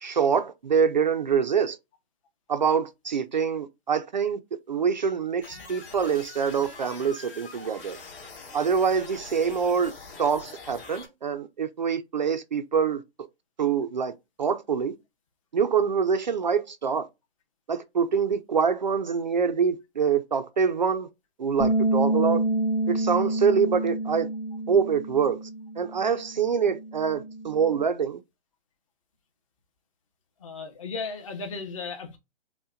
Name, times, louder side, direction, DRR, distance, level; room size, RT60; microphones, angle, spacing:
voice 1, 0.0-1.8 2.5-4.4 4.7-8.0 8.5-9.9 10.2-13.0 13.6-14.1 14.4-15.0 15.5-17.1 17.7-21.1 21.4-22.4 22.9-24.3 24.7-25.4 25.8-28.2, right 6 dB, 45° right, 0.4 m, -25 dB
sound 1, 5.4-11.1, left 4 dB, 55° left, 2.2 m, -44 dB
Bass guitar, 21.6-27.8, right 2 dB, 80° left, 1.6 m, -28 dB
voice 2, 30.4-32.2, left 4 dB, 30° left, 0.8 m, -35 dB
5.5 x 2.1 x 2.4 m
hypercardioid pair, 160°, 33 cm